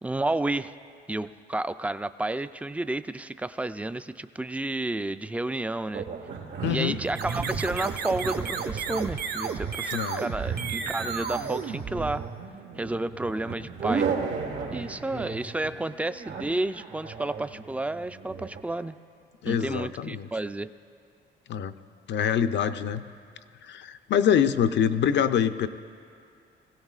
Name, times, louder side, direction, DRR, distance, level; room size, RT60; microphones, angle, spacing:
voice 1, 0.0-0.8 1.1-6.1 6.7-12.2 12.8-14.1 14.7-19.0 19.5-20.7, right 2 dB, 5° right, 12 dB, 0.3 m, -31 dB
sound 1, 5.9-18.6, right 5 dB, 85° right, 1.6 m, -35 dB
voice 2, 6.6-7.0 9.9-10.2 19.4-20.3 21.5-21.8 22.1-23.0 23.6-25.7, left 8 dB, 65° left, 10 dB, 0.6 m, -25 dB
sound 2, 7.1-12.5, right 6 dB, 55° right, 0.7 m, -33 dB
21.0 x 16.5 x 2.4 m, 2.4 s
cardioid pair, 90°, 20 cm